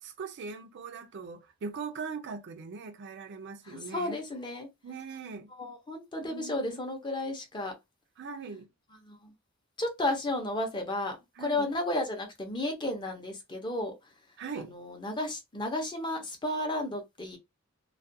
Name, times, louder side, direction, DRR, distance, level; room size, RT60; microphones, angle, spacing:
voice 1, 0.0-4.2 4.8-5.5 6.2-6.8 8.2-8.7 11.4-11.7 14.4-14.7, right 5 dB, 50° right, 0.4 m, -40 dB
voice 2, 3.6-4.7 5.6-7.7 9.0-9.3 9.8-13.9 14.6-17.4, left 1 dB, 20° left, 0.6 m, -33 dB
2.4 x 2.2 x 2.6 m
head